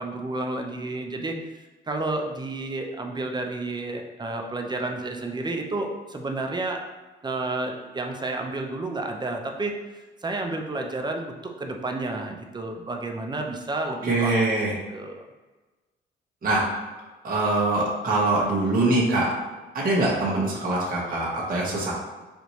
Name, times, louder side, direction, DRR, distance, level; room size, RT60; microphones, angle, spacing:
voice 1, 0.0-1.4 1.9-6.8 7.2-9.7 10.2-14.6 14.9-15.2, right 2 dB, 20° right, 3 dB, 0.6 m, -31 dB
voice 2, 14.0-14.7 16.4-16.6 17.2-19.3 19.7-21.9, right 2 dB, 45° right, -6 dB, 1.4 m, -23 dB
5.0 x 2.6 x 3.1 m, 1.2 s
cardioid pair, 90°, 20 cm